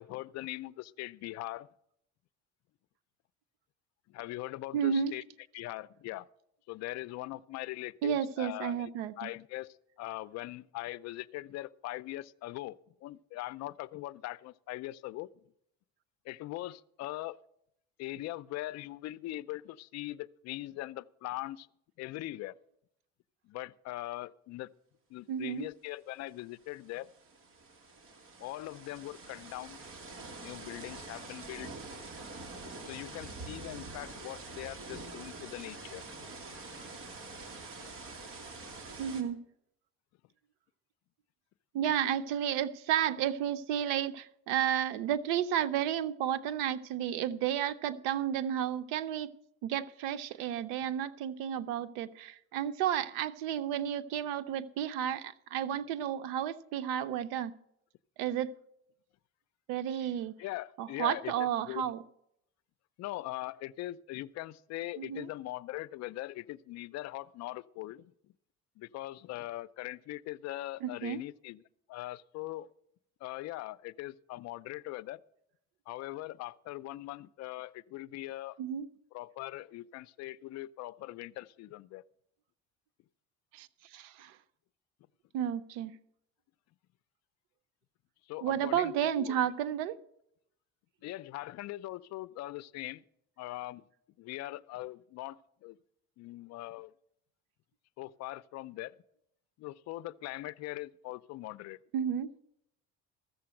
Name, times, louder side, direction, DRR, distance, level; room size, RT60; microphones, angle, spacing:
voice 1, 0.0-1.7 4.1-5.2 5.5-6.3 6.7-8.9 9.2-9.7 10.0-15.3 16.3-17.4 18.0-21.7 22.0-22.5 23.4-24.7 25.1-27.1 28.4-29.8 30.4-31.7 32.8-36.0 60.4-61.9 63.0-68.3 68.8-71.6 71.9-72.7 73.2-75.2 75.9-78.6 79.1-82.0 88.3-89.3 91.0-93.0 93.4-93.8 94.2-95.8 96.2-96.9 98.0-98.9 99.6-101.8, left 17 dB, 55° left, 0.5 m, -41 dB
voice 2, 4.7-5.1 8.0-9.3 25.3-25.7 39.0-39.4 41.7-49.3 49.6-57.5 58.2-58.6 59.7-60.3 60.8-62.0 65.0-65.3 70.8-71.2 78.6-78.9 83.5-84.4 85.3-85.9 88.4-90.0 101.9-102.3, right 9 dB, 90° right, 0.7 m, -32 dB
sound 1, 26.3-26.4 26.6-39.2, right 3 dB, 45° right, 2.0 m, -46 dB
14.0 x 6.9 x 7.6 m
cardioid pair, 120°, 31 cm